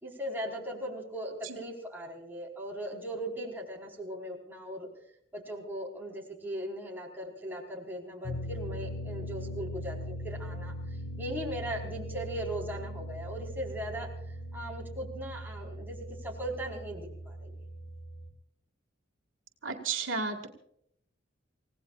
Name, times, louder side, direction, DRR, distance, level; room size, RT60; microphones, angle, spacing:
voice 1, 0.0-4.9 5.3-10.7 11.2-14.1 14.5-17.6, right 1 dB, 10° right, -1 dB, 4.4 m, -38 dB
sound 1, 8.2-18.3, equal, 70° left, 3.2 m, -40 dB
voice 2, 19.6-20.5, right 4 dB, 85° right, 4 dB, 2.1 m, -32 dB
29.5 x 17.5 x 2.5 m, 0.70 s
head